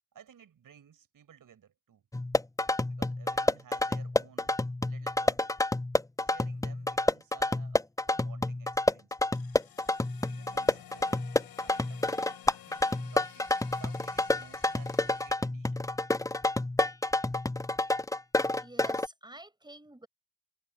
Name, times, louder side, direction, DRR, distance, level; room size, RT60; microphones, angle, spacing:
voice 1, 0.1-2.1 2.9-4.6 4.8-5.5 6.3-9.2 10.3-11.3 11.6-12.4 12.6-15.8, right 8 dB, 50° right, 6.6 m, -56 dB
sound 1, 2.1-19.1, left 2 dB, 10° left, 1.1 m, -29 dB
sound 2, 9.3-15.3, left 11 dB, 55° left, 7.1 m, -52 dB
voice 2, 18.6-20.1, right 1 dB, 10° right, 6.0 m, -49 dB
figure-of-eight pair, 40°, 43 cm